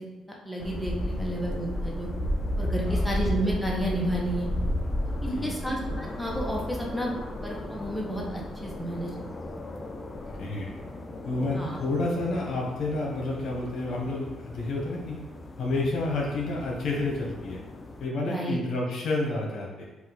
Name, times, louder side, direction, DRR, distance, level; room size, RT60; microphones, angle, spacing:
voice 1, 0.0-2.1 2.6-4.5 5.2-9.1 11.5-11.8 18.3-18.6, right 1 dB, ahead, -2 dB, 0.8 m, -31 dB
sound 1, 0.6-18.1, left 1 dB, 30° left, 0.5 m, -34 dB
voice 2, 2.8-3.2 5.3-5.7 10.3-10.7 11.2-15.2 15.6-17.6 18.0-19.8, left 2 dB, 70° left, -2 dB, 1.0 m, -30 dB
4.3 x 2.5 x 3.9 m, 1.1 s
cardioid pair, 90°, 0 cm